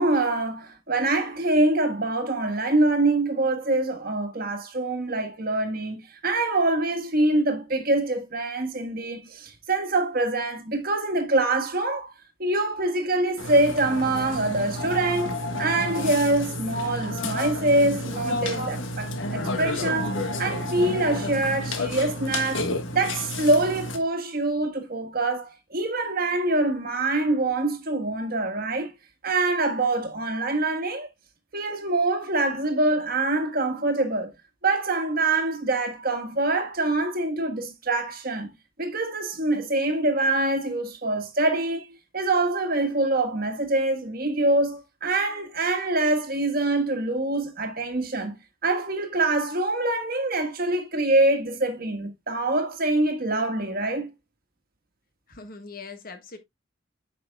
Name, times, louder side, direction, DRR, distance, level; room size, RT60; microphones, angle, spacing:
voice 1, 0.0-12.1 12.4-22.7 22.9-28.9 29.2-31.1 31.5-34.3 34.6-38.5 38.8-41.9 42.1-54.1, right 2 dB, 45° right, 1.5 m, -25 dB
Burping eructation, 13.4-24.0, left 1 dB, 70° left, 1.5 m, -30 dB
voice 2, 55.3-56.4, left 4 dB, 45° left, 1.4 m, -41 dB
9.3 x 5.8 x 2.3 m
head